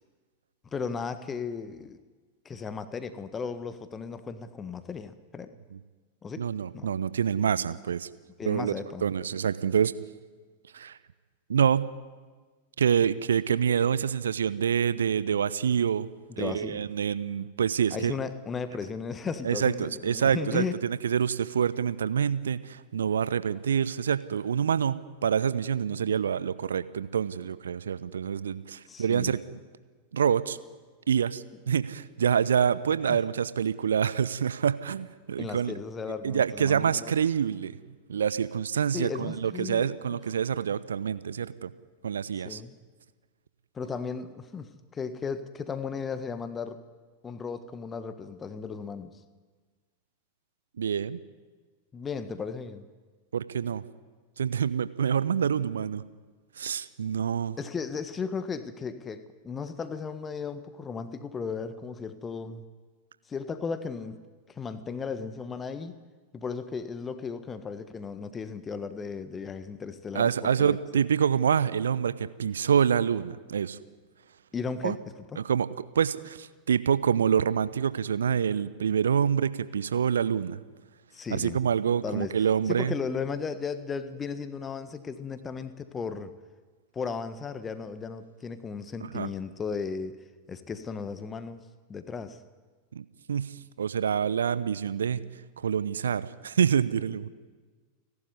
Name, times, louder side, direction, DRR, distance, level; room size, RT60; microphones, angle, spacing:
voice 1, 0.7-2.0 2.4-5.5 6.2-6.5 6.7-6.9 8.4-9.1 16.3-16.8 17.9-20.7 28.9-29.3 33.1-33.2 35.4-37.1 38.9-40.2 42.5-42.7 43.7-46.8 47.2-49.1 51.9-52.9 57.6-62.6 63.3-64.2 64.5-65.9 66.3-70.3 70.6-70.8 74.5-75.0 75.3-75.4 81.1-81.6 82.0-82.4 82.7-86.3 86.9-90.2 90.5-91.6 91.9-92.4, left 5 dB, 20° left, 11 dB, 1.5 m, -35 dB
voice 2, 6.4-8.1 8.4-8.7 9.0-9.9 10.7-11.0 11.5-11.9 12.8-16.1 16.4-18.1 19.4-29.4 30.1-30.6 31.1-35.7 36.2-37.7 38.1-41.7 42.0-42.6 50.8-51.2 53.3-53.8 54.4-56.0 56.6-57.6 70.1-73.8 74.8-75.0 75.4-75.7 75.9-80.6 81.3-82.9 89.0-89.3 92.9-95.2 95.6-97.3, right 7 dB, 65° right, 16 dB, 0.8 m, -26 dB
29.5 x 12.5 x 9.7 m, 1.4 s
figure-of-eight pair, 90°, 0 cm